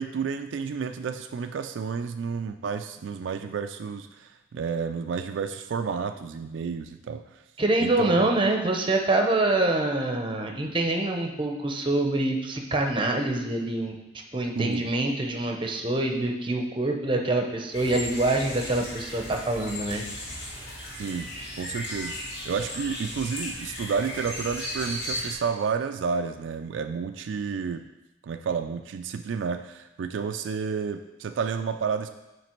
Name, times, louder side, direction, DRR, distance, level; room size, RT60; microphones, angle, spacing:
voice 1, 0.0-7.4 7.8-8.3 14.6-14.9 21.0-21.3 21.6-27.8 28.2-32.1, right 6 dB, 80° right, 8 dB, 0.3 m, -31 dB
voice 2, 7.6-14.0 14.3-20.0, right 2 dB, 30° right, 3 dB, 0.7 m, -25 dB
sound 1, 17.7-25.3, left 1 dB, 65° left, 2.4 m, -36 dB
9.2 x 3.3 x 4.5 m, 1.0 s
head